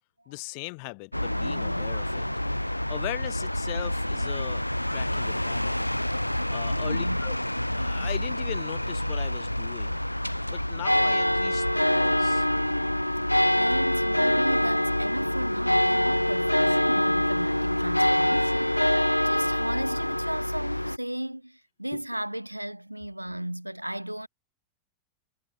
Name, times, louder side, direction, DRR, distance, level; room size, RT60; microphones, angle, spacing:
voice 1, 0.3-2.3 2.9-5.9 6.5-7.4 7.7-10.0 10.4-12.5 21.9-22.0, left 40 dB or more, 45° left, 0.8 m, -39 dB
sound 1, 1.1-21.0, left 1 dB, 90° left, 0.4 m, -26 dB
voice 2, 6.7-7.2 13.6-24.3, right 1 dB, 90° right, 1.2 m, -35 dB
figure-of-eight pair, 90°, 0 cm